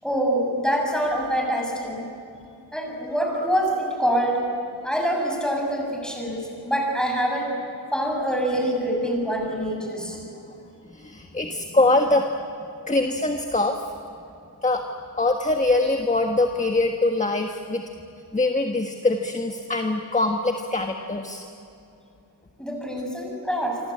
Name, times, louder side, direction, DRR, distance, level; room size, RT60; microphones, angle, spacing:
voice 1, 0.0-2.1 2.7-4.4 4.8-7.5 7.9-10.2 22.6-23.8, equal, ahead, 0 dB, 7.2 m, -25 dB
voice 2, 10.9-12.3 12.9-13.8 14.6-14.8 15.2-17.8 18.3-21.4, left 2 dB, 20° left, 4 dB, 1.5 m, -23 dB
27.5 x 25.0 x 8.6 m, 2.7 s
wide cardioid pair, 125°, 40 cm